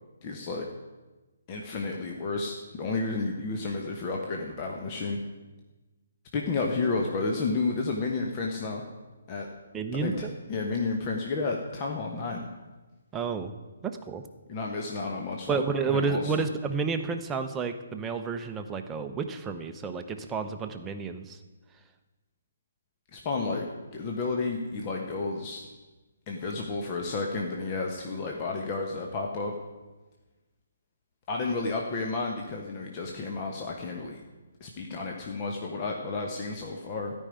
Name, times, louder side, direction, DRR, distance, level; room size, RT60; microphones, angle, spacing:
voice 1, 0.2-0.6 1.5-5.2 6.3-8.8 9.3-9.5 10.0-12.5 14.5-16.4 23.1-23.6 23.9-25.6 26.3-29.5 31.3-34.2 34.6-37.1, left 3 dB, 25° left, 0 dB, 1.2 m, -31 dB
voice 2, 9.7-10.3 13.1-13.5 13.8-14.2 15.5-21.4, right 5 dB, 10° right, 6 dB, 0.8 m, -30 dB
13.5 x 5.5 x 9.3 m, 1.2 s
figure-of-eight pair, 135°, 0 cm